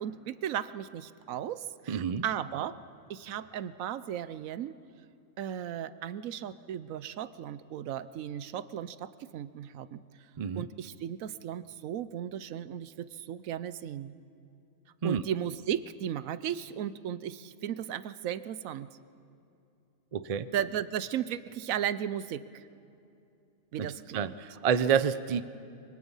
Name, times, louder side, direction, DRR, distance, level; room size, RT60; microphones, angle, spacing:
voice 1, 0.0-2.8 3.1-4.7 5.4-10.0 10.6-14.2 15.0-18.9 20.5-22.6 23.7-24.3, right 10 dB, 80° right, 15 dB, 1.1 m, -35 dB
voice 2, 1.9-2.2 10.4-10.6 15.0-15.2 20.1-20.5 23.8-25.4, right 7 dB, 45° right, 13 dB, 0.5 m, -29 dB
25.0 x 23.0 x 5.5 m, 2.7 s
omnidirectional pair, 1.4 m